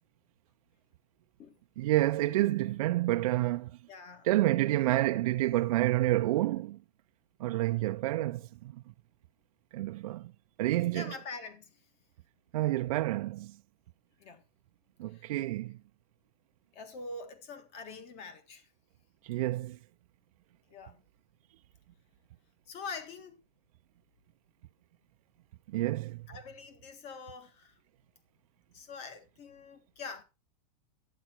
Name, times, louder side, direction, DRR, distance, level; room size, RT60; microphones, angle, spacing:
voice 1, 1.8-3.7 4.2-6.8 7.4-8.8 9.7-10.3 10.6-11.1 12.5-13.6 15.0-15.7 19.2-19.8 25.7-26.2, right 16 dB, 60° right, 0.5 m, -29 dB
voice 2, 3.9-4.3 10.9-11.8 14.2-14.4 15.1-15.3 16.7-18.7 20.7-21.0 22.7-23.4 26.3-27.7 28.7-30.2, left 4 dB, 30° left, 1.7 m, -44 dB
11.5 x 9.2 x 4.4 m
supercardioid pair, 170°, 21 cm